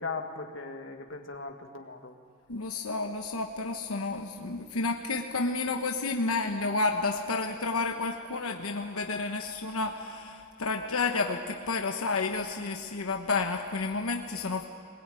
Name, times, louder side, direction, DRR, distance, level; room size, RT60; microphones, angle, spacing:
voice 1, 0.0-2.1, left 3 dB, 60° left, 4 dB, 1.9 m, -38 dB
voice 2, 2.5-14.7, left 3 dB, 85° left, 3 dB, 1.1 m, -31 dB
21.0 x 21.0 x 9.1 m, 2.2 s
head